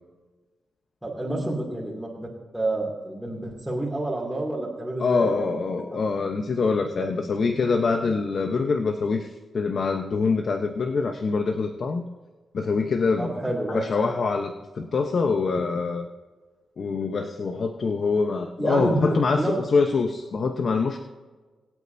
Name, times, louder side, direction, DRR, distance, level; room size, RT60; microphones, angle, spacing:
voice 1, 1.0-2.3 2.5-6.0 13.2-13.8 18.6-19.6, right 1 dB, 5° right, -4 dB, 2.6 m, -29 dB
voice 2, 5.0-9.3 9.5-12.0 12.5-13.3 13.7-16.1 16.8-21.0, left 4 dB, 55° left, 5 dB, 0.9 m, -24 dB
22.0 x 8.4 x 2.7 m, 1.3 s
cardioid pair, 95°, 0 cm